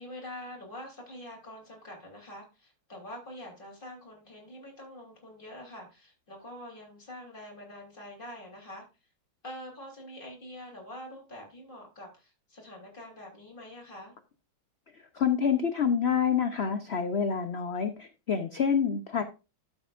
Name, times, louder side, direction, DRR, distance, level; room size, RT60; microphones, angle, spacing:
voice 1, 0.0-8.9 9.4-14.1, left 1 dB, 25° left, -1 dB, 3.6 m, -45 dB
voice 2, 15.1-19.2, left 7 dB, 65° left, 9 dB, 0.6 m, -27 dB
12.0 x 7.8 x 2.5 m, 0.28 s
omnidirectional pair, 2.1 m